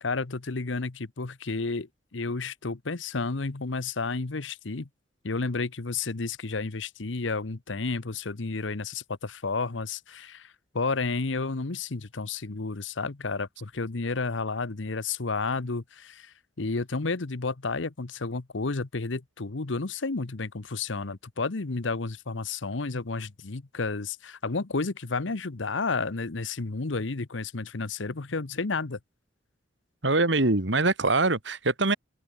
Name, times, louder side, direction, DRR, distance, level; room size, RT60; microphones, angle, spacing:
voice 1, 0.0-4.9 5.2-29.0, left 3 dB, 80° left, 1.0 m, -31 dB
voice 2, 30.0-32.0, right 2 dB, 70° right, 2.5 m, -23 dB
head